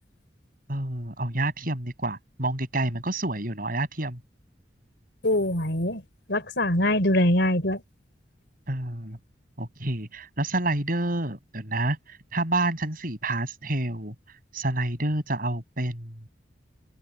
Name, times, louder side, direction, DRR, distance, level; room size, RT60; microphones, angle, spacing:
voice 1, 0.7-4.2 8.7-9.2 9.6-14.1 14.5-16.2, right 2 dB, 50° right, 6.5 m, -28 dB
voice 2, 5.2-6.0 6.3-7.8, left 1 dB, 70° left, 4.3 m, -23 dB
head